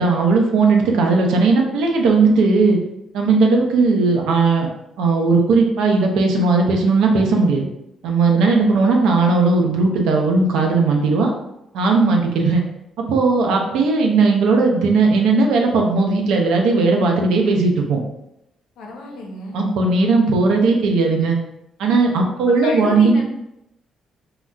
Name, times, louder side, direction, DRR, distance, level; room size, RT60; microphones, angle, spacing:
voice 1, 0.0-2.8 3.1-4.7 5.0-7.7 8.0-11.3 11.7-12.6 13.1-18.0 19.5-21.4 21.8-23.2, right 3 dB, 85° right, 2 dB, 0.5 m, -17 dB
voice 2, 8.3-8.7 18.8-19.6 22.5-23.2, left 2 dB, 90° left, 0 dB, 0.6 m, -32 dB
3.8 x 2.1 x 2.2 m, 0.84 s
cardioid pair, 90°, 0 cm